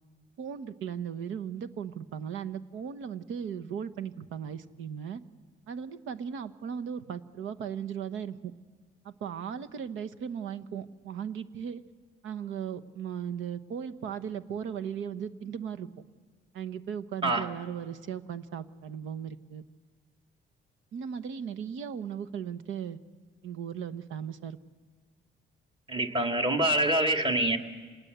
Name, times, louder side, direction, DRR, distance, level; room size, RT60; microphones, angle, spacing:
voice 1, 0.4-5.2 5.7-8.5 9.0-11.8 12.2-15.9 16.5-19.6 20.9-23.0 23.4-24.6, right 8 dB, 85° right, 12 dB, 1.1 m, -37 dB
voice 2, 25.9-27.6, right 1 dB, 25° right, 4 dB, 2.4 m, -25 dB
27.5 x 20.0 x 8.1 m, 1.5 s
cardioid pair, 90°, 20 cm